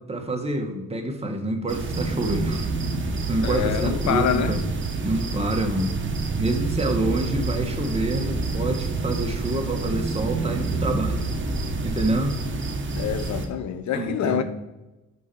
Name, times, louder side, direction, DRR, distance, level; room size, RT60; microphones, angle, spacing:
voice 1, 0.1-2.7 3.3-4.6 5.0-5.9 6.4-11.2 11.8-12.4 13.9-14.4, right 2 dB, 20° right, 1.8 m, -27 dB
sound 1, 1.7-13.5, right 3 dB, 40° right, 1.4 m, -30 dB
sound 2, 1.8-12.1, right 3 dB, 60° right, 2.1 m, -31 dB
voice 2, 3.4-4.6 12.9-14.4, left 8 dB, 70° left, 0.9 m, -26 dB
6.2 x 5.8 x 7.1 m
cardioid pair, 90°, 30 cm